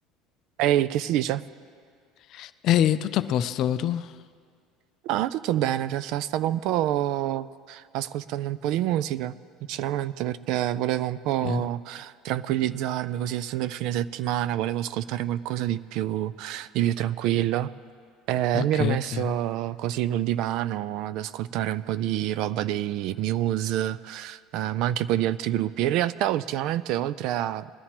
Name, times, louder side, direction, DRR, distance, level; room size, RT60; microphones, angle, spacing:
voice 1, 0.6-1.4 5.0-9.3 9.7-17.7 18.3-27.7, right 12 dB, 60° right, 0.3 m, -27 dB
voice 2, 2.3-4.1 11.4-11.6 18.5-19.0, left 10 dB, 45° left, 0.4 m, -24 dB
20.5 x 12.5 x 2.9 m
cardioid pair, 155°, 0 cm